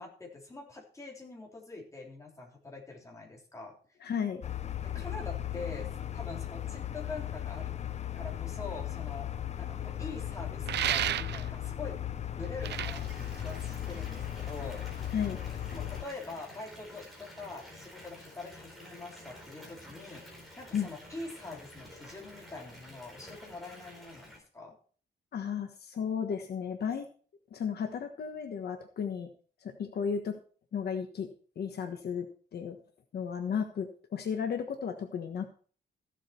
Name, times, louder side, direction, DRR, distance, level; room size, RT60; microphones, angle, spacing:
voice 1, 0.0-3.8 4.8-7.7 8.1-9.3 9.6-12.0 12.4-14.8 15.7-20.2 20.6-24.8, left 3 dB, 15° left, -1 dB, 3.5 m, -44 dB
voice 2, 4.0-4.4 15.1-15.4 20.7-20.9 25.3-27.1 27.5-29.3 29.6-30.4 30.7-31.3 31.6-32.3 32.5-32.8 33.1-35.5, left 7 dB, 65° left, 5 dB, 1.3 m, -34 dB
sound 1, 4.4-16.0, left 11 dB, 40° left, 0.6 m, -37 dB
sound 2, 10.7-11.7 12.4-14.1, right 12 dB, 80° right, 0.4 m, -32 dB
Water tap faucet / Bathtub (filling or washing) / Fill (with liquid), 12.6-24.4, equal, ahead, 4.4 m, -50 dB
15.0 x 7.5 x 4.5 m, 0.43 s
wide cardioid pair, 175°, 18 cm